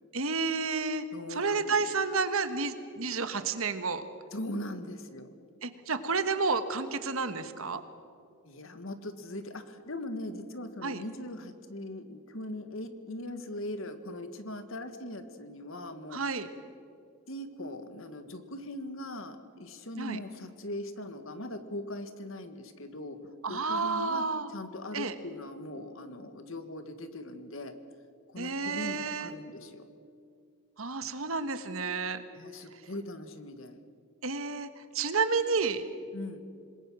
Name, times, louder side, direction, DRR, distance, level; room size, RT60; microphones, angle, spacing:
voice 1, 0.1-1.0 1.3-4.0 5.6-7.8 10.8-11.0 16.1-16.5 20.0-20.2 23.4-24.5 24.9-25.1 28.4-29.3 30.8-32.2 34.2-34.7 34.9-35.9, right 4 dB, 75° right, 10 dB, 1.5 m, -30 dB
voice 2, 1.1-1.7 4.3-5.3 8.5-16.2 17.3-23.2 23.5-27.7 28.3-29.9 32.3-33.8 36.1-36.5, left 1 dB, 65° left, 9 dB, 1.8 m, -40 dB
26.5 x 21.0 x 6.4 m, 2.3 s
head